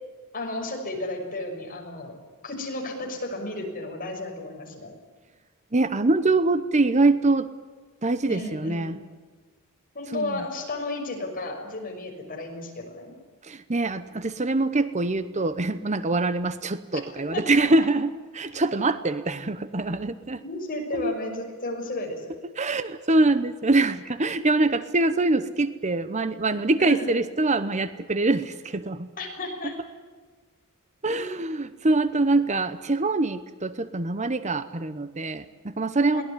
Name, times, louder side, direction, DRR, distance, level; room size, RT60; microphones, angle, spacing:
voice 1, 0.3-2.1 2.4-4.9 8.3-8.9 9.9-13.1 16.9-17.0 17.3-17.4 20.4-22.3 26.8-27.2 29.2-29.8 31.1-31.3 36.1-36.2, left 2 dB, 40° left, 2 dB, 6.2 m, -33 dB
voice 2, 5.7-7.5 8.0-9.0 10.1-10.4 13.4-20.4 20.9-21.1 22.6-29.1 29.6-29.7 31.0-36.2, right 2 dB, 30° right, 13 dB, 0.9 m, -24 dB
23.0 x 18.5 x 9.8 m, 1.4 s
head